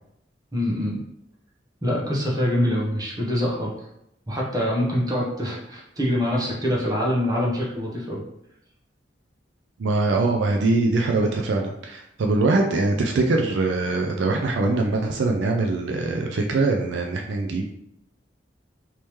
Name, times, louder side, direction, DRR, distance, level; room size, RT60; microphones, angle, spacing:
voice 1, 0.5-1.0 1.8-3.7 4.3-8.2, equal, 20° right, -4 dB, 0.9 m, -24 dB
voice 2, 9.8-17.6, right 3 dB, 75° right, 2 dB, 0.4 m, -22 dB
3.5 x 2.9 x 3.1 m, 0.79 s
head